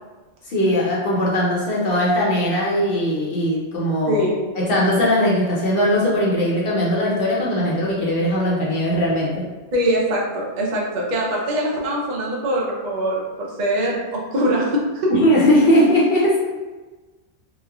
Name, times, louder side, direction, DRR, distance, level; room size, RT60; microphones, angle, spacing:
voice 1, 0.4-4.2 4.6-9.5 15.1-16.4, equal, 60° left, -5 dB, 0.7 m, -19 dB
voice 2, 4.1-4.4 9.7-15.1, equal, 60° right, -3 dB, 0.5 m, -22 dB
3.1 x 2.1 x 2.2 m, 1.3 s
omnidirectional pair, 1.2 m